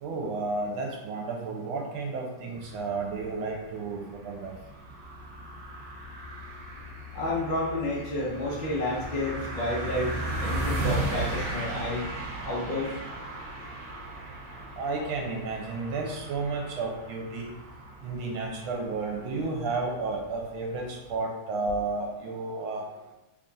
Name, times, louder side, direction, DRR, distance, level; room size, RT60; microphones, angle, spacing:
voice 1, 0.0-4.5 14.8-17.5 18.0-22.8, right 3 dB, 80° right, 0 dB, 1.4 m, -32 dB
sound 1, 2.5-21.1, right 1 dB, 55° right, 1.1 m, -37 dB
voice 2, 7.1-12.1 12.4-12.9, left 1 dB, 75° left, -5 dB, 0.4 m, -30 dB
3.5 x 2.3 x 3.9 m, 1.0 s
omnidirectional pair, 2.4 m